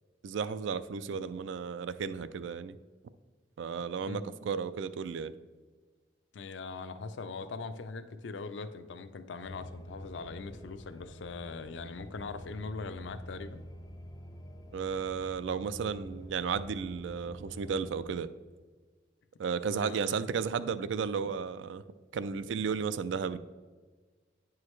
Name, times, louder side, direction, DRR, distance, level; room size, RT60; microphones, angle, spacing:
voice 1, 0.2-2.8 3.6-5.3 14.7-18.3 19.4-21.8 22.1-23.4, right 6 dB, 80° right, 14 dB, 0.3 m, -33 dB
voice 2, 6.3-13.6 19.7-20.3, left 4 dB, 75° left, 10 dB, 0.5 m, -41 dB
sound 1, 9.4-18.2, equal, 20° left, 0.5 m, -47 dB
9.5 x 4.7 x 3.2 m, 1.4 s
head